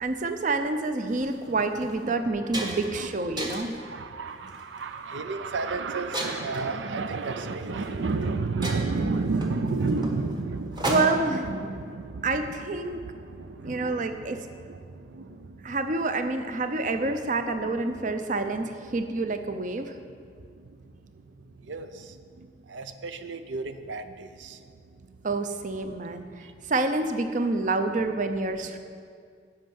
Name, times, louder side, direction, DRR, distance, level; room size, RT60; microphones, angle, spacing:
voice 1, 0.0-3.7 10.9-11.5 12.2-13.0 13.6-14.4 15.6-19.9 25.2-26.2 26.7-28.8, right 3 dB, 45° right, 8 dB, 0.6 m, -27 dB
sound 1, 1.1-1.3 1.8-1.9 2.2-3.0 3.4-3.8 4.5-4.8 6.1-6.7 7.8-7.9 8.2-8.3 8.6-11.4, right 1 dB, 25° right, 1.1 m, -33 dB
voice 2, 3.8-10.9 11.5-12.3 12.9-14.2 14.7-14.8 15.1-15.4 21.7-22.1 22.7-24.6, right 3 dB, 90° right, 10 dB, 0.5 m, -31 dB
11.5 x 5.4 x 7.7 m, 2.2 s
head